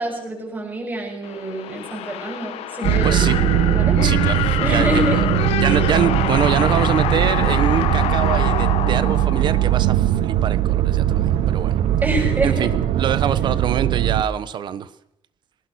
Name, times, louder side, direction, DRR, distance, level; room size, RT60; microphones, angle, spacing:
voice 1, 0.0-3.2 3.7-4.1 4.6-5.2 5.7-5.8 12.0-12.7, equal, 15° right, -1 dB, 7.8 m, -26 dB
sound 1, 1.2-10.1, left 11 dB, 90° left, 1.4 m, -26 dB
sound 2, 2.8-14.2, right 12 dB, 75° right, 1.3 m, -20 dB
voice 2, 3.0-3.4 4.0-5.2 5.5-11.7 12.4-14.9, right 8 dB, 50° right, 15 dB, 1.2 m, -25 dB
24.0 x 19.5 x 6.5 m, 0.79 s
cardioid pair, 165°, 10 cm